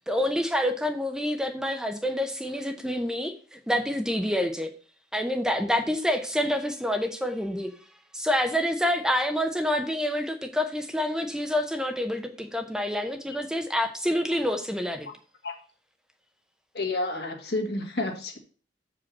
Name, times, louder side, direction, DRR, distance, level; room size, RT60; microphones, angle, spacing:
voice 1, 0.1-4.7 5.1-7.7 8.1-15.1, left 1 dB, 5° right, 6 dB, 0.7 m, -27 dB
voice 2, 16.7-18.4, left 2 dB, 65° left, 3 dB, 1.9 m, -30 dB
7.5 x 5.1 x 5.9 m, 0.40 s
head